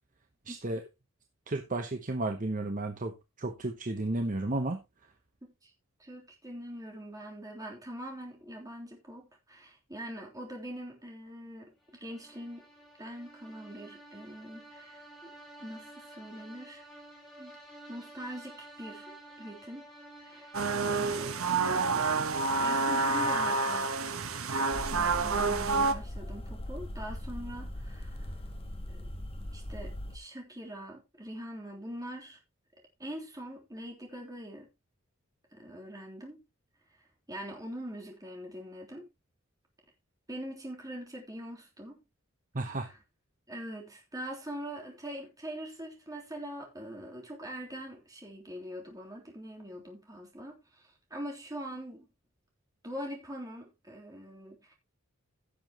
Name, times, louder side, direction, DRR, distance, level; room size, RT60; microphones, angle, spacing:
voice 1, 0.5-0.8 1.5-3.1 3.4-4.8 42.5-42.9, right 2 dB, 40° right, 1.0 m, -32 dB
voice 2, 5.4-5.7 6.0-12.7 13.0-15.3 15.6-16.8 17.4-17.6 17.9-19.9 20.2-21.4 22.2-23.9 24.7-28.4 28.9-29.1 29.5-32.4 33.0-34.7 35.5-36.4 37.3-39.1 40.3-42.0 42.6-43.0 43.5-52.1 52.8-54.7, equal, 15° right, 3.3 m, -43 dB
sound 1, 11.9-22.8, right 1 dB, ahead, 3.5 m, -51 dB
sound 2, 20.5-25.9, right 3 dB, 80° right, 1.3 m, -28 dB
sound 3, 24.7-30.2, left 1 dB, 25° left, 1.4 m, -40 dB
16.0 x 7.1 x 3.0 m
head